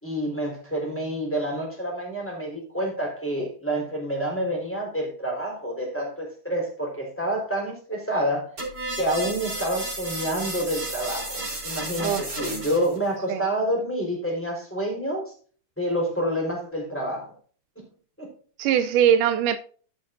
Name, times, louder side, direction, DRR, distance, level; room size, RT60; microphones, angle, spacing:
voice 1, 0.0-8.5 9.0-15.3 15.8-17.3 17.8-17.9 18.2-18.3, right 1 dB, 5° left, 4.1 m, -28 dB
sound 1, 8.6-13.0, right 2 dB, 25° right, 3.9 m, -33 dB
voice 2, 18.6-19.6, right 9 dB, 80° right, 2.2 m, -21 dB
12.5 x 8.7 x 2.6 m
omnidirectional pair, 3.7 m